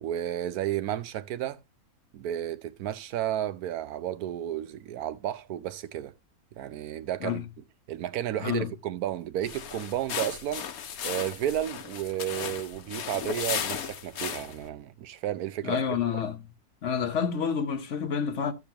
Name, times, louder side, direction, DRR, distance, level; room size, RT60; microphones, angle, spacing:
voice 1, 0.0-1.6 2.1-6.1 6.6-7.4 7.9-10.7 11.0-15.8, right 11 dB, 85° right, 1.2 m, -32 dB
voice 2, 8.4-8.7 15.6-16.5 16.8-18.5, left 7 dB, 55° left, 1.1 m, -29 dB
sound 1, 9.4-14.7, left 8 dB, 75° left, 1.3 m, -35 dB
13.5 x 6.8 x 2.8 m
omnidirectional pair, 1.5 m